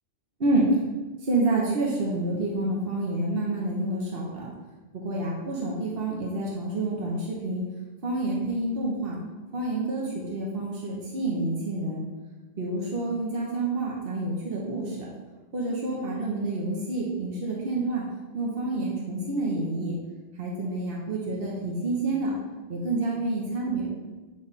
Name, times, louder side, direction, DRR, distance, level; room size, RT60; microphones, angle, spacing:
voice 1, 1.3-4.5 4.9-7.6 8.0-9.2 9.5-12.0 12.6-15.0 15.5-18.0 18.3-20.0 20.4-22.3 22.7-23.9, right 2 dB, 65° right, -4 dB, 1.2 m, -28 dB
7.3 x 3.3 x 4.1 m, 1.2 s
omnidirectional pair, 1.0 m